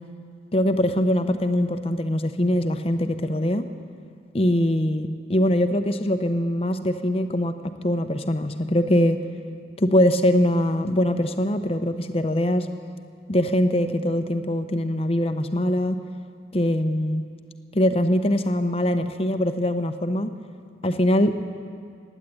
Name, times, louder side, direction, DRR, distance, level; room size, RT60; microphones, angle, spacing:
voice 1, 0.5-3.6 4.3-9.2 9.8-12.7 13.3-16.0 16.5-17.2 17.7-20.3 20.8-21.3, left 1 dB, 35° left, 9 dB, 0.8 m, -22 dB
16.5 x 10.0 x 8.5 m, 2.3 s
head